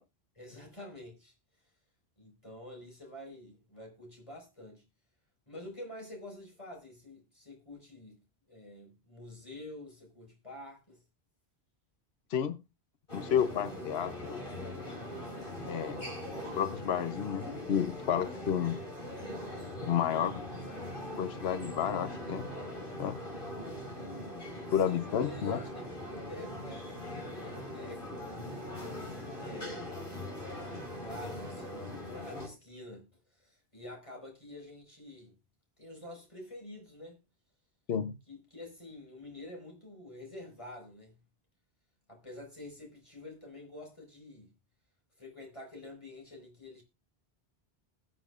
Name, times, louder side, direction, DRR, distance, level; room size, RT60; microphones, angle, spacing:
voice 1, 0.3-1.3 2.2-4.8 5.5-8.2 8.5-11.0 23.2-23.3 24.7-28.4 29.4-30.1 30.9-35.3 35.8-37.2 38.3-41.1 42.1-44.5 45.2-46.8, left 1 dB, 30° left, 4.6 m, -48 dB
voice 2, 13.1-14.5 15.7-16.0 16.5-18.8 19.8-20.5 21.1-22.5 23.0-23.2 24.7-25.6 37.9-38.1, left 8 dB, 75° left, 1.0 m, -31 dB
sound 1, 13.1-32.5, left 1 dB, 55° left, 4.7 m, -41 dB
21.5 x 7.6 x 2.4 m
omnidirectional pair, 1.1 m